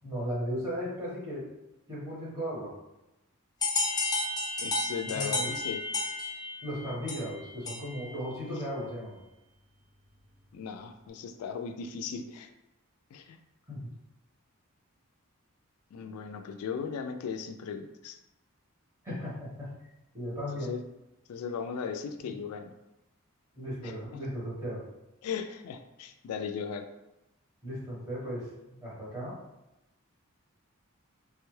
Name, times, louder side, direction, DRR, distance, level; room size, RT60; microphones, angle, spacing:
voice 1, 0.0-1.5 1.9-2.7 5.0-5.5 6.6-9.2 13.7-13.9 19.0-19.7 20.1-20.7 22.2-22.3 23.5-24.8 27.6-28.5 28.8-29.4, equal, 15° right, -8 dB, 1.3 m, -36 dB
sound 1, 3.6-8.1, left 3 dB, 20° left, 0.5 m, -32 dB
voice 2, 4.6-5.8 8.4-8.6 10.5-12.5 13.1-13.4 15.9-18.2 20.6-20.8 21.3-22.7 23.8-24.2 25.2-26.8, left 6 dB, 80° left, 11 dB, 0.3 m, -37 dB
3.3 x 2.2 x 3.1 m, 0.94 s
head